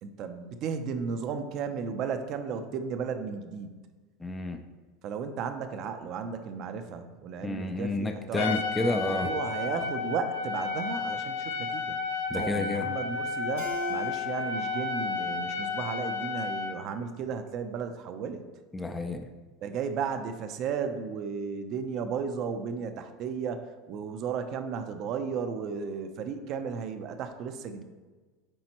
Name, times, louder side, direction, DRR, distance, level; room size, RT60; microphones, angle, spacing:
voice 1, 0.0-3.7 5.0-12.0 12.3-18.4 19.6-27.8, right 6 dB, 40° right, 8 dB, 0.6 m, -34 dB
voice 2, 4.2-4.6 7.4-9.3 12.3-12.9 18.7-19.3, left 2 dB, 10° left, 5 dB, 0.4 m, -30 dB
Trumpet, 8.4-16.8, left 5 dB, 85° left, 0.6 m, -32 dB
Keyboard (musical), 13.6-16.8, right 7 dB, 80° right, 1.0 m, -43 dB
9.9 x 4.2 x 3.0 m, 1.3 s
supercardioid pair, 150°, 0 cm